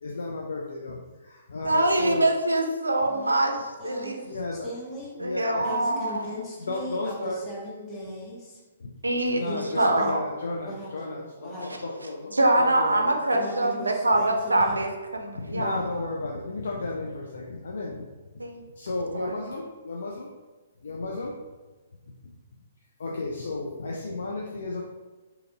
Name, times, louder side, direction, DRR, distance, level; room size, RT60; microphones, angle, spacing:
voice 1, 0.0-2.3 4.2-4.7 5.2-5.8 6.6-7.4 8.8-8.9 9.3-12.3 12.6-13.1 15.4-18.1 18.3-18.4 18.8-20.3 20.8-21.3 23.0-24.8, left 2 dB, 60° left, -2 dB, 0.3 m, -33 dB
voice 2, 1.6-3.6 3.8-4.3 5.2-6.3 9.0-9.4 9.8-10.2 12.3-15.8 18.4-18.6 19.2-19.3, right 1 dB, 75° right, 3 dB, 0.4 m, -24 dB
voice 3, 3.0-4.3 4.6-5.2 5.6-8.6 9.4-9.7 10.0-10.1 10.6-11.8 13.3-14.8, left 1 dB, 20° left, -5 dB, 0.8 m, -38 dB
2.7 x 2.4 x 2.7 m, 1.3 s
figure-of-eight pair, 125°, 0 cm